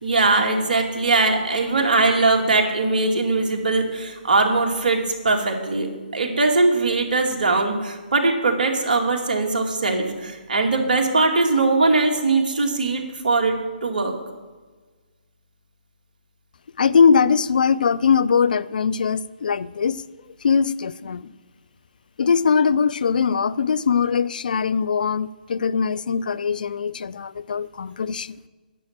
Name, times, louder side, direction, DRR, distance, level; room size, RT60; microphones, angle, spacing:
voice 1, 0.0-5.0 5.2-13.6 13.8-14.1, right 3 dB, 60° right, 2.3 m, -21 dB
voice 2, 16.8-20.0 20.4-21.3 22.2-28.4, left 6 dB, 60° left, 0.5 m, -21 dB
11.0 x 7.1 x 8.7 m
figure-of-eight pair, 135°, 5 cm